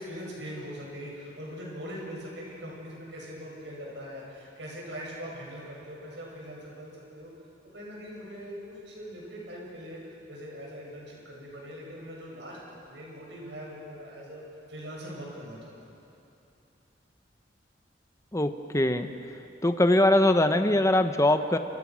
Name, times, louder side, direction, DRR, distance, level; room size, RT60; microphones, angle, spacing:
voice 1, 0.0-7.3 7.7-14.4 14.7-15.9, equal, 70° right, -3 dB, 7.9 m, -41 dB
voice 2, 18.3-19.1 19.6-21.6, left 1 dB, 15° left, 7 dB, 0.9 m, -22 dB
27.0 x 26.0 x 6.3 m, 2.8 s
head